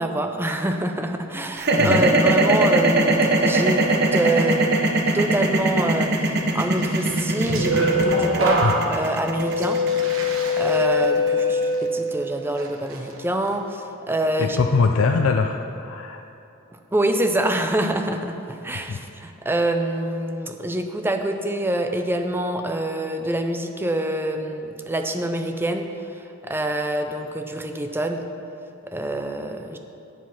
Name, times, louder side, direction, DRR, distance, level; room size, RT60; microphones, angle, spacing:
voice 1, 0.0-4.7 5.1-9.8 10.6-14.6 16.9-28.2 28.8-29.8, right 1 dB, 10° right, 5 dB, 0.6 m, -26 dB
sound 1, 1.6-11.7, right 2 dB, 55° right, 0.9 m, -20 dB
sound 2, 7.1-12.1 12.6-13.0, left 2 dB, 80° right, 1.1 m, -23 dB
voice 2, 14.4-16.2 18.9-19.0, left 4 dB, 85° left, 4 dB, 0.5 m, -22 dB
8.2 x 7.5 x 5.7 m, 2.7 s
head